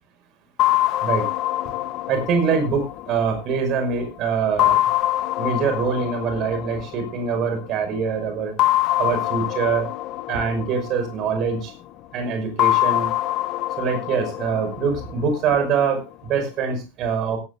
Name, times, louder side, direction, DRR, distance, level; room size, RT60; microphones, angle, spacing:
sound 1, 0.6-3.9 4.6-7.5 8.6-11.7 12.6-15.7, left 15 dB, 40° left, 1.0 m, -24 dB
voice 1, 2.1-4.8 5.4-8.5 9.0-9.9 10.3-11.7 12.1-13.1 13.8-17.4, right 5 dB, 35° right, 7 dB, 5.7 m, -24 dB
17.0 x 15.5 x 2.5 m, 0.29 s
figure-of-eight pair, 90°, 0 cm